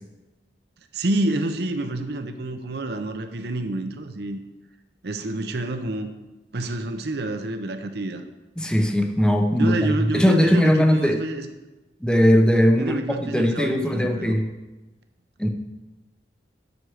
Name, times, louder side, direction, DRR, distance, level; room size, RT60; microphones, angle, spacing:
voice 1, 0.9-4.4 5.0-6.1 6.5-8.2 9.6-11.5 12.8-14.4, right 2 dB, 60° right, 7 dB, 0.7 m, -28 dB
voice 2, 8.6-11.2 12.0-14.5 15.4-15.5, equal, 5° left, 4 dB, 0.7 m, -19 dB
7.9 x 6.0 x 6.5 m, 1.1 s
head